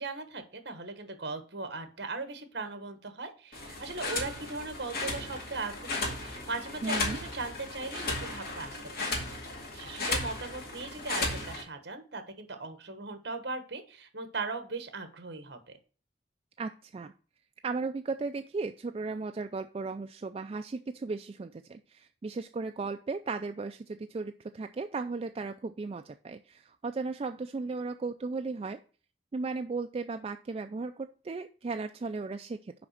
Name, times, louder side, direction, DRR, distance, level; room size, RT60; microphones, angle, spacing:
voice 1, 0.0-9.4 9.7-15.8, right 3 dB, 60° right, 8 dB, 1.4 m, -39 dB
sound 1, 3.5-11.6, left 2 dB, 55° left, 1.9 m, -35 dB
voice 2, 6.8-7.2 16.6-17.1 17.6-28.8 29.3-32.7, right 4 dB, 30° right, 7 dB, 0.3 m, -36 dB
6.0 x 5.0 x 6.4 m, 0.38 s
head